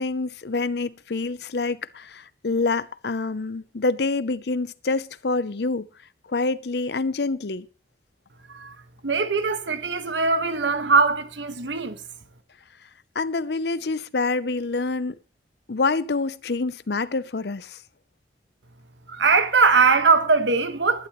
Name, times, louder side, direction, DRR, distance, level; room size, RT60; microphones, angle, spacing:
voice 1, 0.0-5.9 6.3-7.7 13.1-15.1 15.7-17.8, left 3 dB, 65° left, 0.7 m, -26 dB
voice 2, 9.0-12.0 19.1-21.1, right 4 dB, 85° right, 1.5 m, -21 dB
20.5 x 11.5 x 3.1 m
head